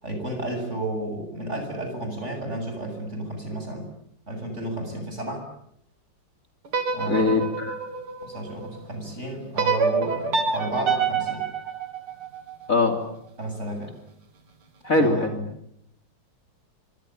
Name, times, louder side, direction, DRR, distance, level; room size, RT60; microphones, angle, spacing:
voice 1, 0.0-3.9 4.3-5.4 6.9-7.4 8.2-11.4 13.4-13.9 15.0-15.4, right 1 dB, 30° right, 5 dB, 8.2 m, -32 dB
sound 1, 6.7-8.8 9.6-12.7, right 5 dB, 85° right, 4.0 m, -27 dB
voice 2, 7.1-7.8 12.7-13.0 14.8-15.3, left 3 dB, 40° left, 5 dB, 3.3 m, -21 dB
26.0 x 25.0 x 8.9 m, 0.75 s
omnidirectional pair, 2.3 m